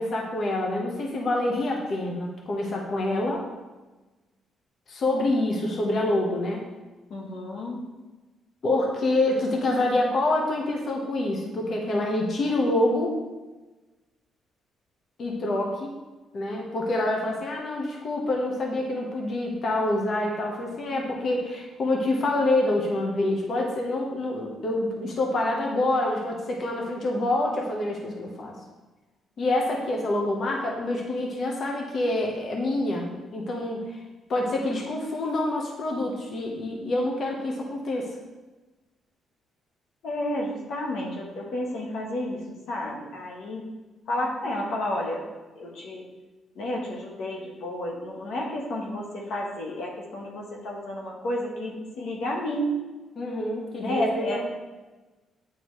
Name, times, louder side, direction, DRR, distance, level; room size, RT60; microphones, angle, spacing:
voice 1, 0.0-3.4 4.9-6.6 8.6-13.2 15.2-15.9 16.3-28.6 29.4-34.0 34.3-38.1 53.2-54.4, left 2 dB, 55° left, 0 dB, 1.1 m, -26 dB
voice 2, 7.1-7.8 40.0-42.4 42.7-43.6 44.1-45.2 45.5-46.0 46.5-52.8 53.8-54.4, left 1 dB, 75° left, -1 dB, 1.1 m, -31 dB
9.2 x 3.9 x 3.2 m, 1.2 s
cardioid pair, 90°, 0 cm